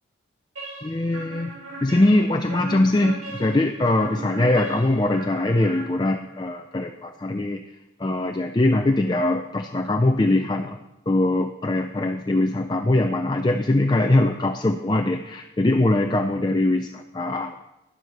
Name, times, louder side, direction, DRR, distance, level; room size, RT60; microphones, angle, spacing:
sound 1, 0.6-6.4, right 2 dB, 85° right, 2.8 m, -38 dB
voice 1, 0.8-1.5 1.8-7.6 8.0-10.8 11.1-17.6, left 2 dB, 20° left, 6 dB, 0.4 m, -22 dB
11.0 x 7.5 x 6.7 m, 0.94 s
head